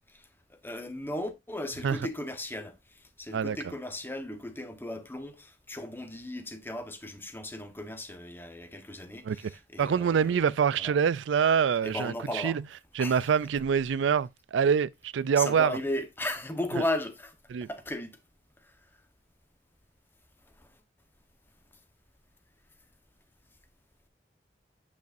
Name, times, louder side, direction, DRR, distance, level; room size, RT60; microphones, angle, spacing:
voice 1, 0.1-10.5 10.8-10.9 11.8-12.6 13.0-13.3 15.4-17.3 17.6-18.1 18.6-18.8 20.6-20.7, left 1 dB, 10° left, 1.0 m, -36 dB
voice 2, 9.8-12.6 13.0-15.8 17.5-17.7, right 7 dB, 85° right, 0.4 m, -25 dB
9.1 x 5.4 x 2.6 m
head